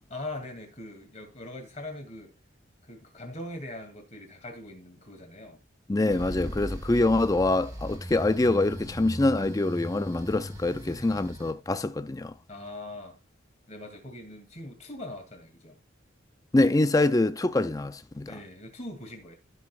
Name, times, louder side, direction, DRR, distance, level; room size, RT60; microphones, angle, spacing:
voice 1, 0.1-2.3 2.8-5.6 11.0-11.1 12.5-13.2 13.7-15.8 18.3-19.4, left 1 dB, 35° left, 2.5 m, -41 dB
voice 2, 5.9-12.3 16.5-18.3, left 2 dB, 20° left, 0.4 m, -25 dB
sound 1, 6.1-11.5, equal, 20° right, 1.4 m, -38 dB
14.5 x 6.1 x 2.4 m
head